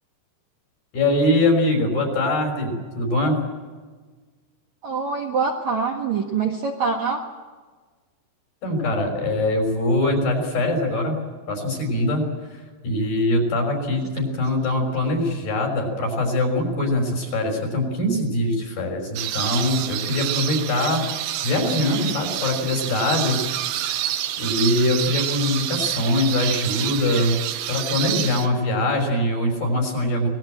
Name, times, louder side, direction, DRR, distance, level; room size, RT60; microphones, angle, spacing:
voice 1, 0.9-3.4 8.6-11.2 11.5-21.0 21.4-23.4 24.4-27.4 27.7-30.3, left 1 dB, 55° left, 3 dB, 7.2 m, -22 dB
voice 2, 4.8-7.2, right 5 dB, 55° right, 1 dB, 2.2 m, -24 dB
sound 1, 19.2-28.5, right 12 dB, 80° right, 3.2 m, -28 dB
25.5 x 20.5 x 7.8 m, 1.4 s
omnidirectional pair, 5.2 m